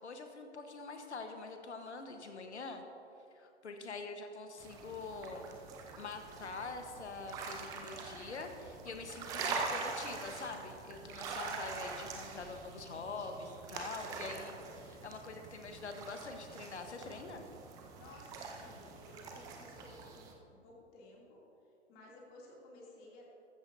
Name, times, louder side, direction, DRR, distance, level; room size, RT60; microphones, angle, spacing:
voice 1, 0.0-2.8 3.3-5.5 6.0-17.4, left 3 dB, 70° left, 5 dB, 1.2 m, -45 dB
sound 1, 4.6-20.3, right 4 dB, 10° right, 0.5 m, -44 dB
sound 2, 6.0-10.8, equal, 60° right, 1.5 m, -63 dB
voice 2, 17.9-21.4 21.9-23.4, left 2 dB, 25° left, -3 dB, 2.7 m, -56 dB
14.0 x 13.5 x 2.7 m, 2.7 s
figure-of-eight pair, 125°, 35 cm